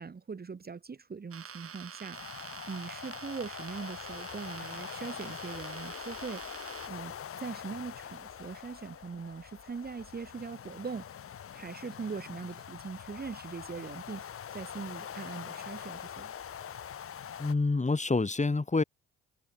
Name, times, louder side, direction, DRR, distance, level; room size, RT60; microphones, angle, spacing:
voice 1, 0.0-7.1 7.4-11.1 11.5-16.3, right 5 dB, 30° right, 1.9 m, -41 dB
sound 1, 1.3-6.9, right 7 dB, 50° right, 4.2 m, -46 dB
sound 2, 2.1-17.5, left 8 dB, 50° left, 1.6 m, -44 dB
voice 2, 17.4-18.8, left 3 dB, 25° left, 4.6 m, -27 dB
hypercardioid pair, 55°, 30 cm